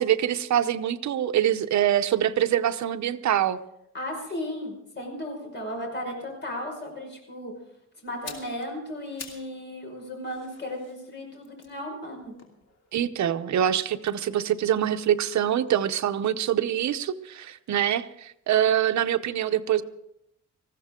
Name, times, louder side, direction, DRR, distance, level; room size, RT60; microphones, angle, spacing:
voice 1, 0.0-3.6 12.9-19.8, right 10 dB, 65° right, 9 dB, 0.8 m, -24 dB
voice 2, 3.9-7.5 8.0-12.3, left 1 dB, 35° left, 1 dB, 5.4 m, -35 dB
sound 1, 8.1-9.6 9.9-13.1 13.9-16.0 16.3-16.4, left 4 dB, 55° left, 2.9 m, -48 dB
19.5 x 15.0 x 3.7 m, 0.79 s
wide cardioid pair, 140°, 30 cm